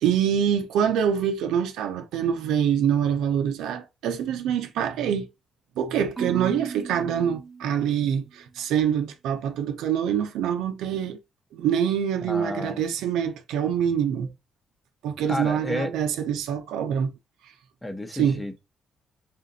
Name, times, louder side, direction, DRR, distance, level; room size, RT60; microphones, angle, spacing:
voice 1, 0.0-5.3 5.8-11.2 11.5-14.3 15.0-17.1 18.2-18.4, right 8 dB, 85° right, 0.7 m, -25 dB
Marimba xylophone / Wood, 6.2-8.4, right 5 dB, 30° right, 0.5 m, -37 dB
voice 2, 12.2-12.8 15.3-15.9 17.8-18.6, left 1 dB, 10° left, 0.9 m, -31 dB
3.8 x 2.5 x 4.0 m
cardioid pair, 90°, 0 cm